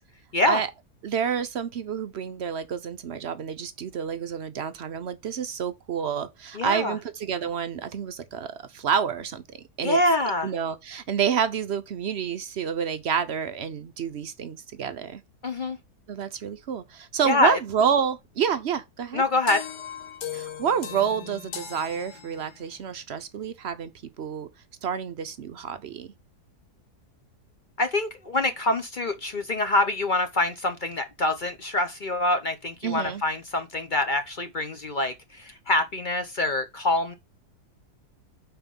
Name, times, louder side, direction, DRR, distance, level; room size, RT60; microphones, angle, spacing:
voice 1, 1.0-10.0 10.4-15.2 16.1-19.2 20.3-23.9 24.2-24.5 24.8-26.1 32.8-33.2, right 7 dB, 65° right, 0.6 m, -29 dB
voice 2, 6.5-7.0 9.8-10.5 15.4-15.8 17.3-17.6 19.1-19.7 27.8-37.1, left 2 dB, 45° left, 0.6 m, -25 dB
sound 1, 19.5-22.8, left 8 dB, 85° left, 1.6 m, -38 dB
5.7 x 4.4 x 5.3 m
omnidirectional pair, 1.7 m